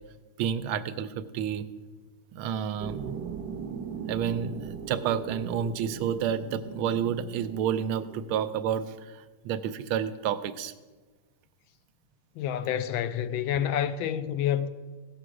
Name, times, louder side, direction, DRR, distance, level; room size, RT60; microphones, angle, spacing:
voice 1, 0.4-1.7 2.3-3.2 4.1-8.8 9.1-10.7, right 8 dB, 90° right, 1.5 m, -30 dB
sound 1, 2.8-8.5, right 6 dB, 65° right, 1.0 m, -39 dB
voice 2, 12.4-14.7, left 10 dB, 80° left, 1.3 m, -28 dB
16.0 x 6.4 x 4.8 m
omnidirectional pair, 2.3 m